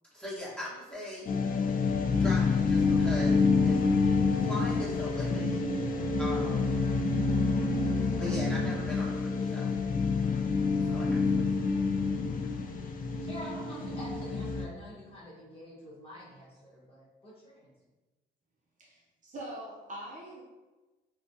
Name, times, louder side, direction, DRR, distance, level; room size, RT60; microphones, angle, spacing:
voice 1, 0.1-1.5 2.1-3.8 4.3-6.8 8.1-9.8 10.8-11.6, left 1 dB, 5° left, -10 dB, 1.5 m, -40 dB
sound 1, 1.3-14.7, left 4 dB, 45° left, 0.4 m, -28 dB
voice 2, 13.2-17.7, equal, 30° left, -7 dB, 1.3 m, -46 dB
voice 3, 18.8-20.4, right 1 dB, 40° right, -4 dB, 0.7 m, -43 dB
3.2 x 2.2 x 2.7 m, 1.2 s
cardioid pair, 90°, 20 cm